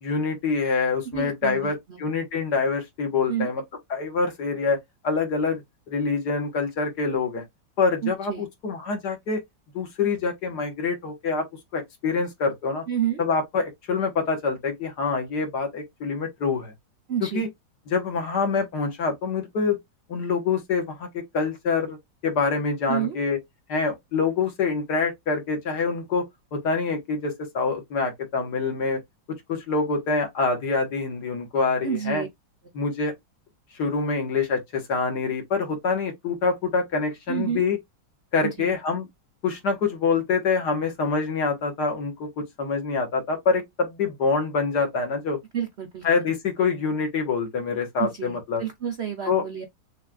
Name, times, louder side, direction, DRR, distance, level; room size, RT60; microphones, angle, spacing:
voice 1, 0.0-3.6 3.9-5.6 5.9-7.4 7.8-9.4 9.7-11.5 11.7-12.8 13.2-16.7 17.2-17.5 17.9-19.8 20.1-22.0 22.2-23.4 23.7-26.2 26.5-29.0 29.5-32.2 32.7-33.1 33.8-37.8 38.3-39.1 39.4-45.4 46.0-48.6 49.3-49.4, left 4 dB, 60° left, 1.8 m, -25 dB
voice 2, 1.1-2.0 3.3-3.5 8.0-8.5 12.9-13.2 17.1-17.5 22.9-23.2 31.8-32.3 37.3-37.7 38.4-38.7 45.5-46.3 48.0-49.6, right 10 dB, 65° right, 0.6 m, -29 dB
6.4 x 2.4 x 2.4 m
omnidirectional pair, 2.1 m